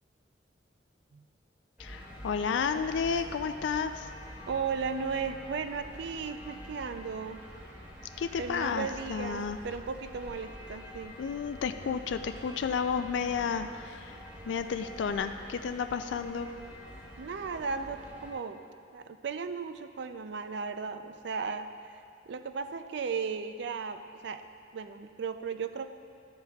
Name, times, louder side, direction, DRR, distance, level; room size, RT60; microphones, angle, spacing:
voice 1, 1.8-4.1 8.2-9.6 11.2-16.5, left 6 dB, 70° left, 9 dB, 0.3 m, -32 dB
sound 1, 1.8-18.3, equal, 5° right, 1.1 m, -46 dB
voice 2, 4.5-7.4 8.4-11.2 17.2-18.6 18.9-21.7 21.9-22.0 22.3-24.4 24.7-25.9, right 5 dB, 60° right, 9 dB, 0.4 m, -36 dB
13.0 x 7.8 x 2.3 m, 2.3 s
head